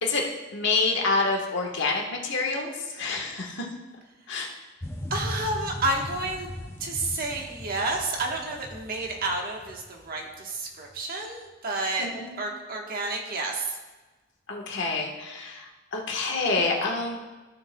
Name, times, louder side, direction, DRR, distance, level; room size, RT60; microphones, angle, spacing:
voice 1, 0.0-3.7 4.3-4.5 12.0-12.3 14.5-17.2, left 3 dB, 65° left, 0 dB, 1.4 m, -27 dB
sound 1, 4.8-10.4 10.9-11.0, left 1 dB, 15° left, 0.5 m, -38 dB
voice 2, 5.1-6.5 6.8-12.1 12.4-13.6, right 2 dB, 50° right, 1 dB, 1.3 m, -30 dB
14.5 x 6.6 x 2.3 m, 1.2 s
head